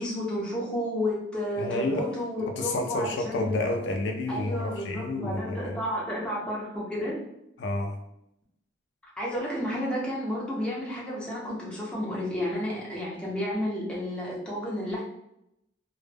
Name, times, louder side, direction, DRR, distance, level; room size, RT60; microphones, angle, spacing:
voice 1, 0.0-3.6 4.3-7.2 9.2-15.0, left 1 dB, 5° left, -6 dB, 0.6 m, -31 dB
voice 2, 1.6-2.1 2.5-5.8 7.6-8.0, left 2 dB, 65° left, 3 dB, 0.3 m, -30 dB
2.1 x 2.0 x 3.2 m, 0.81 s
head